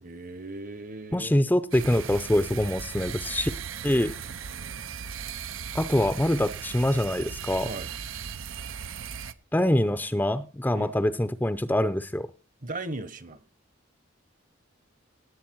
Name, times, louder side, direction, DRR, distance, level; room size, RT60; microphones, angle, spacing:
voice 1, 0.0-1.3 4.3-4.8 7.6-7.9 10.7-10.9 12.6-13.4, right 2 dB, 40° right, 1.0 m, -38 dB
voice 2, 1.1-3.5 3.8-4.1 5.7-7.7 9.5-12.3, left 1 dB, 10° left, 0.5 m, -24 dB
sound 1, 1.7-9.3, right 7 dB, 90° right, 0.7 m, -37 dB
17.5 x 8.1 x 4.6 m
head